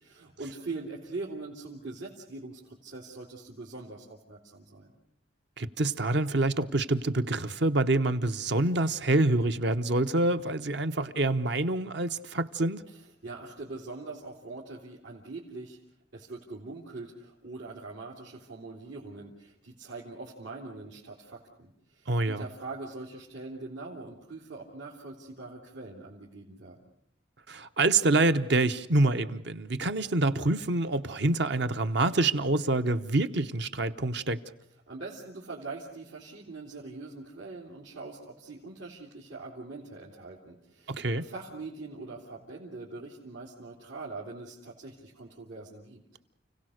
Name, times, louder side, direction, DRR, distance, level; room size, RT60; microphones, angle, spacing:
voice 1, 0.0-4.9 12.9-13.0 13.2-15.8 16.1-26.8 34.9-46.0, right 3 dB, 85° right, -4 dB, 3.4 m, -42 dB
voice 2, 5.6-12.8 22.1-22.4 27.5-34.4 40.9-41.2, right 2 dB, 65° right, 9 dB, 1.0 m, -26 dB
29.5 x 17.5 x 6.5 m, 0.75 s
head